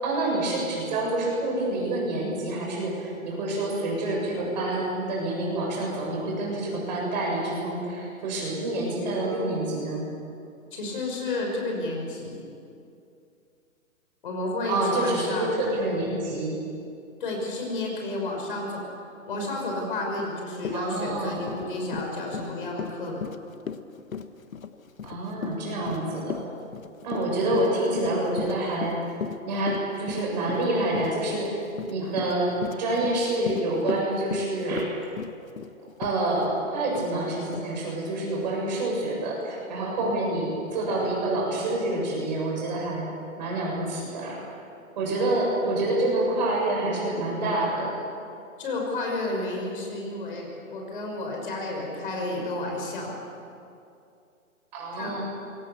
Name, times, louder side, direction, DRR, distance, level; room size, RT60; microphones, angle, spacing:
voice 1, 0.0-10.1 14.7-16.6 20.7-21.5 25.0-26.4 27.0-29.2 29.4-35.0 36.0-43.1 43.4-44.5 45.0-48.0 54.7-55.2, right 2 dB, 30° right, -2 dB, 7.4 m, -27 dB
voice 2, 10.7-12.4 14.2-15.5 17.2-18.8 19.3-23.3 48.6-53.2 54.9-55.1, left 2 dB, 40° left, 0 dB, 6.1 m, -31 dB
Run, 20.2-20.3 20.6-36.6 36.9-37.1 37.5-37.7, left 7 dB, 70° left, 1.6 m, -36 dB
27.5 x 22.5 x 7.2 m, 2.5 s
hypercardioid pair, 170°, 42 cm